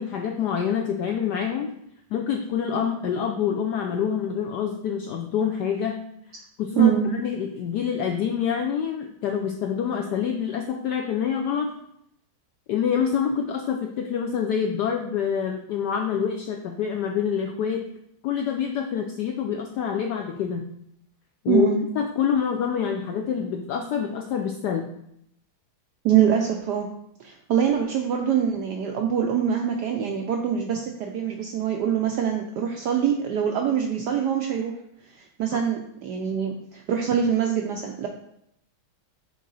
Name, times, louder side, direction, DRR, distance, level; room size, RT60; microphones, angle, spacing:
voice 1, 0.0-1.7 2.1-6.0 6.6-11.7 12.7-17.9 18.2-20.7 21.4-21.7 22.0-24.9, left 7 dB, 80° left, 3 dB, 0.9 m, -26 dB
voice 2, 6.8-7.1 21.5-21.8 26.0-26.9 27.2-34.7 35.1-38.1, right 8 dB, 80° right, 3 dB, 0.9 m, -24 dB
6.5 x 3.9 x 4.0 m, 0.75 s
omnidirectional pair, 2.3 m